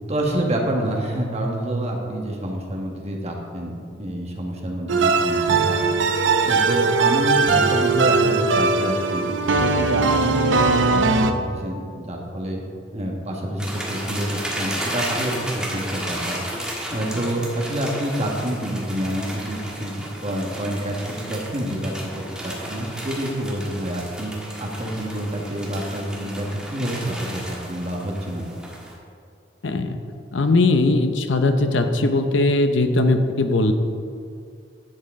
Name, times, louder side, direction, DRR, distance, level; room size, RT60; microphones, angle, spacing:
voice 1, 0.1-5.9 6.2-12.6 12.9-24.3 24.6-28.5, right 1 dB, 35° right, 0 dB, 1.4 m, -28 dB
sound 1, 4.9-11.3, right 4 dB, 80° right, 0.6 m, -19 dB
sound 2, 13.6-28.9, right 1 dB, 5° right, 1.5 m, -33 dB
voice 2, 29.6-30.0 30.3-33.7, left 2 dB, 75° left, 7 dB, 0.7 m, -19 dB
10.5 x 7.6 x 3.7 m, 2.3 s
head